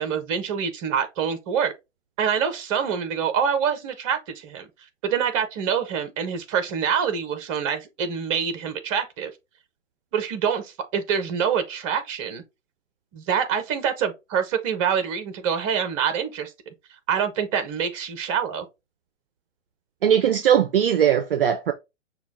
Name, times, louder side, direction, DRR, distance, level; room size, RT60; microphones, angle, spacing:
voice 1, 0.0-1.7 2.2-4.7 5.0-9.3 10.1-12.4 13.1-16.5 17.1-18.7, right 7 dB, 25° right, 0.8 m, -25 dB
voice 2, 20.0-21.7, right 9 dB, 50° right, 0.5 m, -19 dB
5.9 x 2.3 x 3.6 m
figure-of-eight pair, 120°, 37 cm